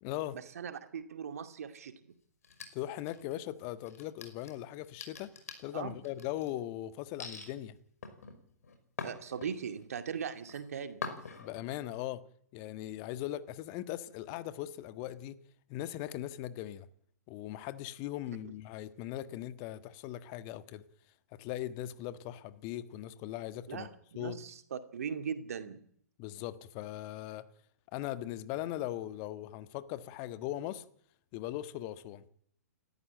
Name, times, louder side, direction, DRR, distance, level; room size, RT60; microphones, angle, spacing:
voice 1, 0.0-0.4 2.7-5.3 5.6-7.7 11.4-12.2 12.5-15.4 15.7-16.9 17.3-20.8 21.4-23.9 24.1-24.4 26.2-27.4 27.9-30.8 31.3-32.2, left 13 dB, 35° left, 1.5 m, -39 dB
voice 2, 0.6-2.0 5.7-6.0 9.0-11.1 23.7-23.9 24.2-25.8, right 7 dB, 60° right, 2.3 m, -39 dB
sound 1, 2.4-3.4 3.9-6.5 7.2-7.5 8.0-9.8 10.2-10.6 11.0-11.6, left 5 dB, 60° left, 5.6 m, -44 dB
30.0 x 14.0 x 9.0 m
figure-of-eight pair, 115°, 9 cm